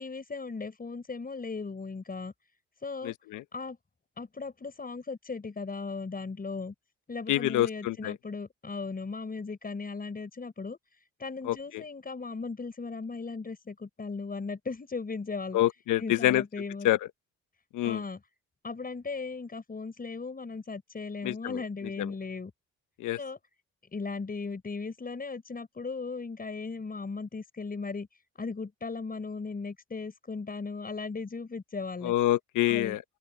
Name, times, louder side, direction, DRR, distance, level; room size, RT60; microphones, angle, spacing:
voice 1, 0.0-2.3 2.8-3.1 3.5-3.8 4.2-6.7 7.1-10.8 11.2-15.6 16.0-16.9 17.8-18.2 18.6-22.5 23.2-23.4 23.9-28.1 28.4-32.1 32.7-33.0, left 4 dB, 30° left, 5.5 m, -37 dB
voice 2, 3.0-3.4 7.3-8.1 11.4-11.8 15.5-16.4 16.8-17.0 17.7-18.0 21.2-21.6 23.0-23.2 32.0-33.0, left 14 dB, 90° left, 1.1 m, -27 dB
open air
cardioid pair, 90°, 30 cm